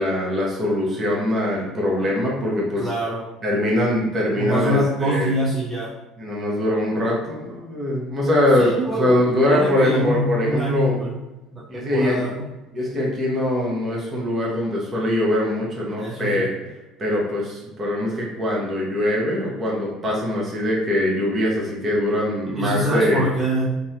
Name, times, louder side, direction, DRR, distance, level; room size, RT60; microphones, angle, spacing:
voice 1, 0.0-2.9 3.4-5.3 6.2-11.0 11.7-12.2 12.7-16.5 17.0-23.2, left 1 dB, 30° right, -4 dB, 0.9 m, -22 dB
voice 2, 2.8-3.2 4.4-5.9 8.6-11.1 11.5-12.5 16.0-16.5 22.6-23.7, right 1 dB, 5° right, -8 dB, 0.6 m, -24 dB
2.7 x 2.1 x 2.5 m, 1.0 s
figure-of-eight pair, 60°, 0 cm